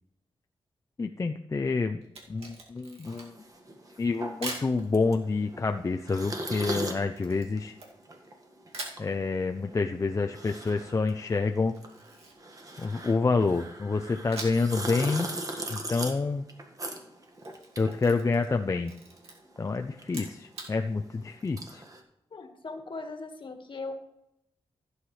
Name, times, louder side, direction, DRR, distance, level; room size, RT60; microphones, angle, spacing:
voice 1, 1.0-2.0 2.3-3.4 4.0-7.7 9.0-11.7 12.8-15.3 15.7-16.4 17.8-18.9 19.6-21.8, left 4 dB, 30° left, 5 dB, 0.5 m, -28 dB
Camera, 2.0-3.5 4.4-4.7 7.2-8.3 8.7-9.0 11.7-13.2 14.3-14.8 15.1-15.2 17.2-18.6 18.8-19.3 20.0-20.7, right 2 dB, 80° right, 2.3 m, -42 dB
sound 1, 3.0-18.9 19.1-22.0, right 1 dB, 35° right, 1.6 m, -40 dB
voice 2, 22.3-23.9, left 3 dB, 55° left, 5 dB, 1.6 m, -39 dB
15.0 x 8.0 x 3.2 m, 0.83 s
cardioid pair, 85°, 10 cm